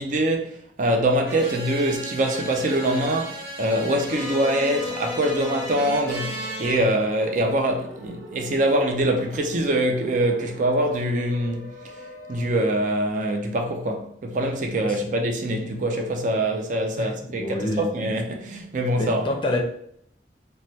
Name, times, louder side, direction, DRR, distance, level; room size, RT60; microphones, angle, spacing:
voice 1, 0.0-11.7 12.3-19.2, right 1 dB, 45° right, 0.4 m, -24 dB
sound 1, 1.2-6.7, equal, 65° right, 1.2 m, -34 dB
sound 2, 4.0-12.6, equal, 25° right, 1.0 m, -43 dB
voice 2, 17.0-17.9 18.9-19.6, left 1 dB, 30° left, 0.5 m, -28 dB
3.1 x 2.2 x 2.7 m
head